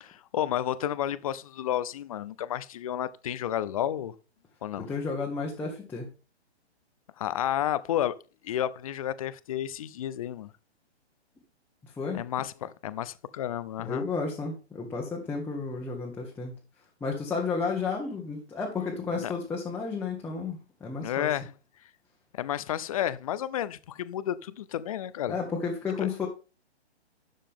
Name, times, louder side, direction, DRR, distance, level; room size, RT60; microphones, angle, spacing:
voice 1, 0.0-4.1 4.6-4.9 7.2-8.2 8.4-10.5 12.1-14.1 19.2-19.3 21.0-21.5 22.3-25.4, left 11 dB, 30° left, 0.6 m, -31 dB
voice 2, 4.8-6.1 11.8-12.2 13.8-16.5 17.0-21.3 25.3-26.3, left 4 dB, 5° left, 1.4 m, -32 dB
12.0 x 7.3 x 3.7 m
hypercardioid pair, 155°, 34 cm